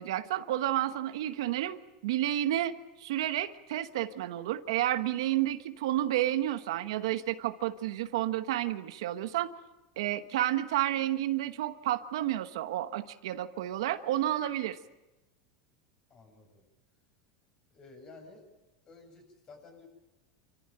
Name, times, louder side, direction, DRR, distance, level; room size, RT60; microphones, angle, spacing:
voice 1, 0.0-9.5 10.0-14.8, right 13 dB, 85° right, 10 dB, 1.2 m, -31 dB
voice 2, 16.1-16.7 17.7-18.5 18.8-19.9, left 3 dB, 30° left, 3 dB, 7.7 m, -53 dB
27.0 x 15.0 x 9.0 m, 1.0 s
supercardioid pair, 130°, 3 cm